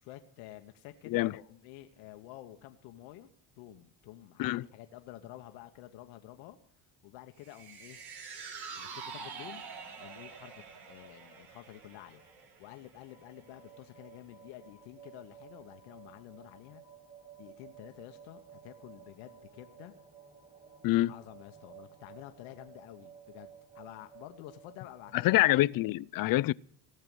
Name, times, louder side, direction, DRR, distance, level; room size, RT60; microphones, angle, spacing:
voice 1, 0.0-3.3 3.6-6.6 7.0-8.0 8.8-12.2 12.6-16.8 17.4-19.9 21.1-25.4, left 14 dB, 80° left, 1.2 m, -50 dB
sound 1, 7.4-13.9 14.2-14.3, right 5 dB, 55° right, 3.6 m, -46 dB
sound 2, 13.1-26.0, right 7 dB, 15° right, 2.5 m, -55 dB
voice 2, 25.2-26.5, left 17 dB, 50° left, 0.5 m, -26 dB
17.5 x 6.7 x 9.2 m
supercardioid pair, 85°, 46 cm